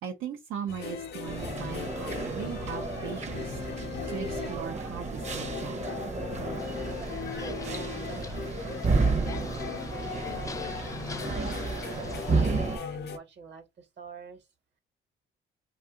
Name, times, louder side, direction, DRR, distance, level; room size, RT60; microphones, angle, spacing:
voice 1, 0.0-3.6 4.1-5.8, right 8 dB, 85° right, 0.6 m, -38 dB
sound 1, 0.7-13.2, left 8 dB, 55° left, 0.6 m, -39 dB
sound 2, 1.3-12.8, right 3 dB, 35° right, 0.7 m, -32 dB
sound 3, 6.6-12.4, left 4 dB, 15° left, 0.4 m, -44 dB
voice 2, 7.3-10.6 11.0-14.5, right 5 dB, 60° right, 1.2 m, -46 dB
2.6 x 2.4 x 3.7 m
cardioid pair, 90°, 20 cm